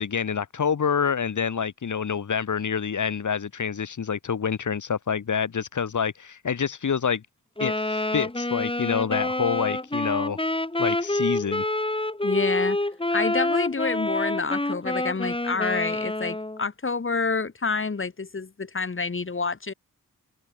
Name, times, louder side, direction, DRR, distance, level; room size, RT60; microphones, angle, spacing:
voice 1, 0.0-7.2 7.6-10.4 10.8-11.6, left 6 dB, 65° left, 2.4 m, -27 dB
Wind instrument woodwind instrument, 7.6-16.6, left 2 dB, 15° left, 7.2 m, -27 dB
voice 2, 12.2-12.8 13.1-19.7, left 4 dB, 40° left, 2.9 m, -28 dB
wide cardioid pair, 110°, 33 cm